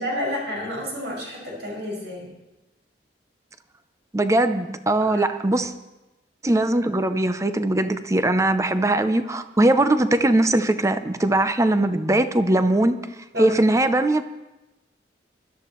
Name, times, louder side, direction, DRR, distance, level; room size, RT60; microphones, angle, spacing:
voice 1, 0.0-2.3 5.0-5.3 13.3-13.6, left 1 dB, 70° right, -3 dB, 6.1 m, -30 dB
voice 2, 4.1-5.7 6.4-13.0 13.4-14.2, right 1 dB, 15° right, 10 dB, 0.6 m, -20 dB
23.5 x 12.5 x 3.1 m, 1.0 s
head